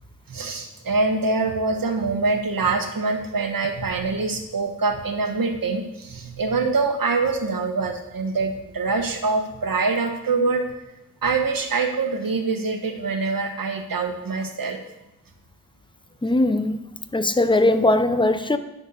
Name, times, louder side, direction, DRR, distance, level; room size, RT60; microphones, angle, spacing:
voice 1, 0.3-10.6 11.2-14.8, right 3 dB, 80° right, 5 dB, 1.2 m, -24 dB
voice 2, 16.2-16.8 17.1-18.6, left 2 dB, 15° left, 10 dB, 0.7 m, -19 dB
11.5 x 4.4 x 6.5 m, 0.91 s
wide cardioid pair, 55°, 34 cm